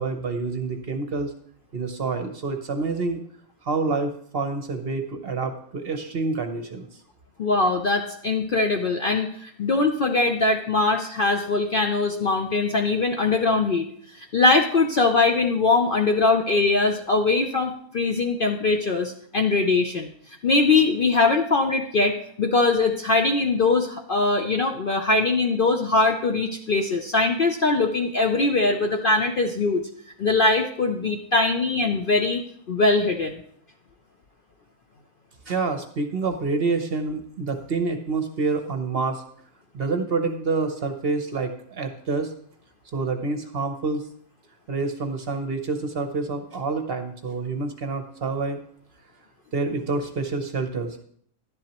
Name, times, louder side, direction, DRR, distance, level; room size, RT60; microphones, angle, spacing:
voice 1, 0.0-1.3 1.7-3.2 3.6-6.9 35.5-39.2 39.7-42.3 42.9-44.0 44.7-48.6 49.5-51.0, right 3 dB, 50° right, 7 dB, 0.9 m, -27 dB
voice 2, 7.4-13.8 14.2-20.1 20.4-29.8 30.2-33.4, left 3 dB, 55° left, 4 dB, 0.6 m, -22 dB
11.5 x 10.5 x 3.0 m, 0.63 s
omnidirectional pair, 1.5 m